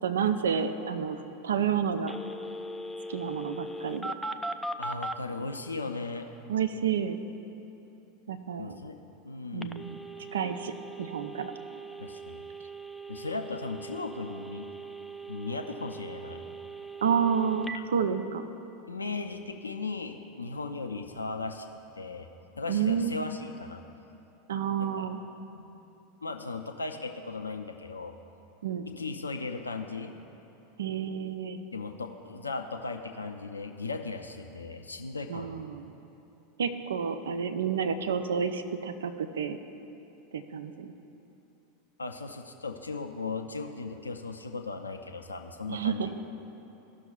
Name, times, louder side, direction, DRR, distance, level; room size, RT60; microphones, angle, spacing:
voice 1, 0.0-2.1 3.1-4.1 6.5-7.2 8.3-8.8 9.5-10.0 10.3-11.5 17.0-18.5 22.7-23.2 24.5-25.2 28.6-28.8 30.8-31.6 35.3-35.9 36.6-39.6 40.3-40.9 45.7-46.2, right 7 dB, 70° right, 9 dB, 0.4 m, -30 dB
Telephone, 2.1-5.2 9.6-17.8, right 2 dB, 5° left, 0.3 m, -40 dB
voice 2, 4.8-6.3 8.6-9.0 9.2-9.8 12.0-12.4 13.1-14.7 15.3-16.4 17.7-17.8 18.9-21.7 22.0-22.3 22.5-23.8 24.8-25.0 25.5-25.7 26.2-28.1 28.9-30.1 31.7-35.6 42.0-46.2, left 3 dB, 80° left, 5 dB, 0.4 m, -37 dB
14.5 x 6.1 x 2.4 m, 3.0 s
figure-of-eight pair, 85°, 0 cm